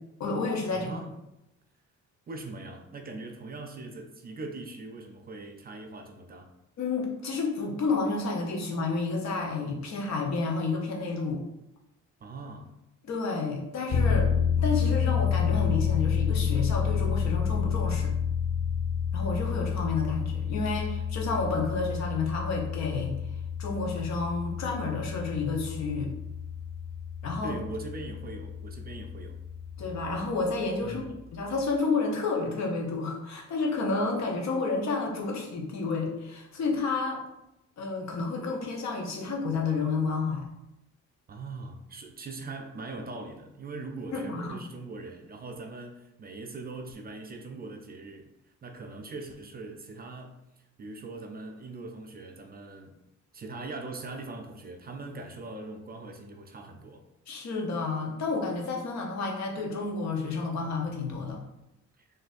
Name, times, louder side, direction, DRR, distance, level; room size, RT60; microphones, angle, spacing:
voice 1, 0.2-0.9 6.8-11.4 13.0-18.1 19.1-23.2 23.6-26.1 27.2-27.6 29.8-31.0 31.3-37.2 37.8-40.4 44.1-44.6 57.3-61.4, left 3 dB, 65° left, 1 dB, 0.8 m, -30 dB
voice 2, 0.7-1.1 2.3-6.5 12.2-12.7 27.4-29.4 30.8-31.2 41.3-48.2 48.6-50.4 50.8-53.0 53.3-57.0 62.0-62.1, right 3 dB, 30° right, 4 dB, 0.4 m, -41 dB
sound 1, 13.9-30.3, left 7 dB, 40° left, 0.4 m, -29 dB
3.9 x 2.6 x 2.5 m, 0.89 s
cardioid pair, 90°, 30 cm